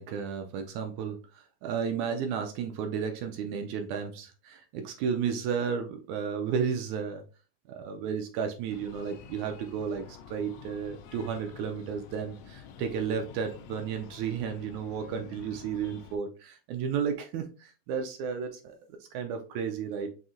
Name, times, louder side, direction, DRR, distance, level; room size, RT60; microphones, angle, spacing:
voice 1, 0.0-7.2 7.7-18.8 19.0-20.1, right 7 dB, 80° right, 4 dB, 1.8 m, -33 dB
Breathing, 8.7-16.2, left 8 dB, 85° left, 1.5 m, -49 dB
5.6 x 2.7 x 2.4 m, 0.35 s
omnidirectional pair, 3.5 m